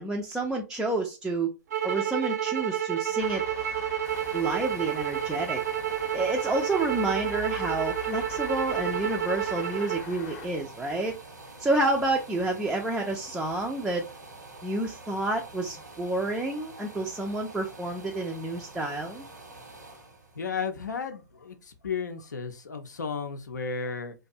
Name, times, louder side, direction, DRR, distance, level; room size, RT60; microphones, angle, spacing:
voice 1, 0.0-1.5 1.8-3.4 4.3-5.6 5.9-11.2 11.6-14.0 14.6-19.2, right 2 dB, 5° right, 0.3 m, -29 dB
sound 1, 1.7-10.1, right 10 dB, 65° right, 0.5 m, -30 dB
sound 2, 3.2-10.5, left 5 dB, 40° left, 0.6 m, -43 dB
sound 3, 4.0-21.7 22.2-22.3, right 2 dB, 85° right, 1.0 m, -47 dB
voice 2, 20.4-21.5 21.8-24.1, left 5 dB, 80° left, 0.5 m, -33 dB
2.5 x 2.2 x 2.5 m
figure-of-eight pair, 115°, 9 cm